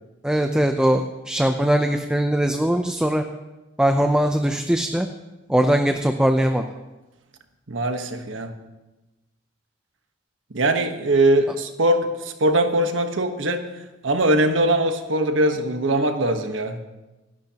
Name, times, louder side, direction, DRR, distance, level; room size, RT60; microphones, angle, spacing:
voice 1, 0.2-3.2 3.8-5.1 5.5-6.6, right 1 dB, 5° right, 5 dB, 0.6 m, -20 dB
voice 2, 7.7-8.6 10.5-13.7 14.0-16.8, right 1 dB, 80° right, 6 dB, 1.3 m, -21 dB
26.5 x 12.0 x 3.0 m, 1.1 s
head